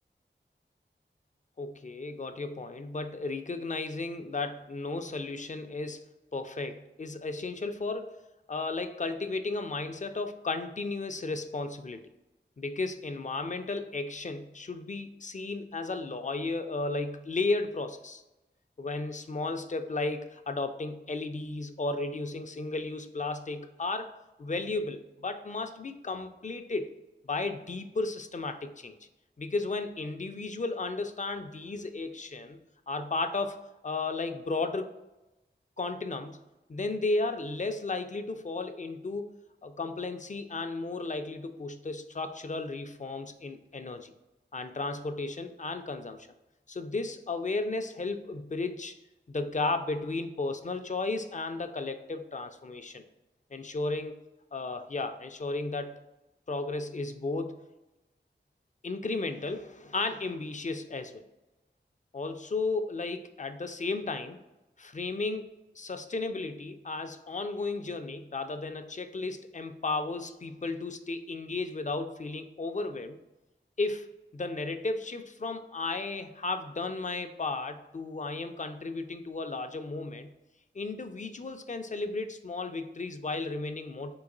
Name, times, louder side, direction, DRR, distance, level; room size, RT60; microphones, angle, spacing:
voice 1, 1.6-8.2 8.5-12.0 12.6-18.2 18.8-24.1 24.4-26.9 27.2-28.9 29.4-32.6 32.9-33.6 33.8-34.9 35.8-36.4 36.7-39.3 39.6-44.1 44.5-46.3 46.7-48.9 49.3-53.0 53.5-54.1 54.5-56.0 56.5-57.6 58.8-61.2 62.1-64.4 64.8-65.5 65.8-73.2 73.8-80.3 80.7-84.1, left 3 dB, 40° left, 8 dB, 0.4 m, -34 dB
3.9 x 2.9 x 3.8 m, 0.98 s
wide cardioid pair, 50°, 19 cm